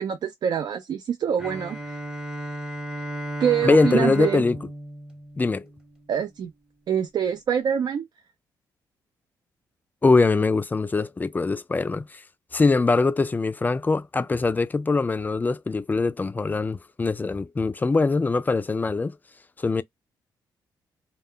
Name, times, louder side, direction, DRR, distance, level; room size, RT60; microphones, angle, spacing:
voice 1, 0.0-2.0 3.4-4.4 6.1-6.5 6.9-8.1, right 8 dB, 60° right, 0.5 m, -25 dB
Bowed string instrument, 1.4-6.1, right 1 dB, 10° right, 0.8 m, -34 dB
voice 2, 3.6-4.6 5.4-5.6 10.0-12.2 12.5-19.2 19.6-19.8, left 3 dB, 20° left, 0.4 m, -22 dB
2.3 x 2.1 x 3.5 m
cardioid pair, 75°, 8 cm